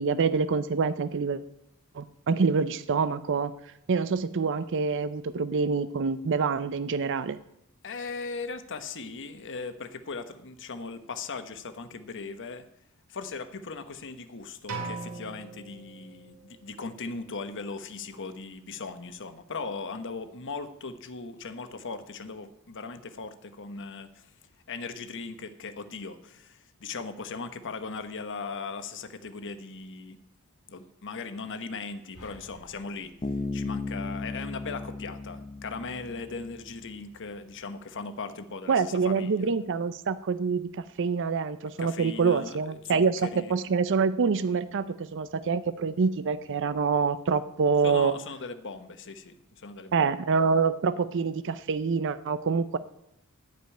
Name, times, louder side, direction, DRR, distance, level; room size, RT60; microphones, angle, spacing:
voice 1, 0.0-1.4 1.9-7.4 38.7-48.2 49.9-52.8, right 5 dB, 55° right, 14 dB, 0.5 m, -26 dB
voice 2, 7.8-12.7 13.1-24.3 24.7-30.2 30.7-39.5 41.8-43.6 47.8-50.1, left 4 dB, 55° left, 10 dB, 1.1 m, -38 dB
sound 1, 14.7-16.6, right 4 dB, 90° right, 3.0 m, -39 dB
sound 2, 32.1-34.6, left 1 dB, 85° left, 3.4 m, -54 dB
Bass guitar, 33.2-36.9, left 2 dB, 25° left, 0.7 m, -35 dB
14.5 x 5.3 x 8.9 m, 0.81 s
head